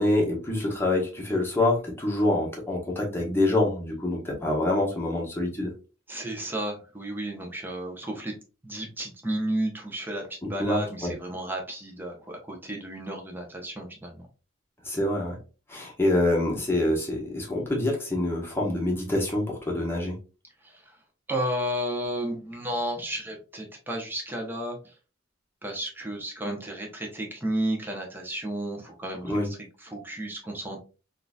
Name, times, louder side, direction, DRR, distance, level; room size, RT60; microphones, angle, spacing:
voice 1, 0.0-5.7 10.4-11.1 14.8-15.4 15.7-20.2 29.3-29.5, left 1 dB, 10° left, -2 dB, 1.0 m, -26 dB
voice 2, 6.1-8.3 8.6-14.2 20.6-20.9 21.3-24.9 25.6-29.3 29.8-30.8, right 1 dB, 10° right, 0 dB, 0.8 m, -32 dB
3.7 x 2.6 x 2.3 m, 0.33 s
head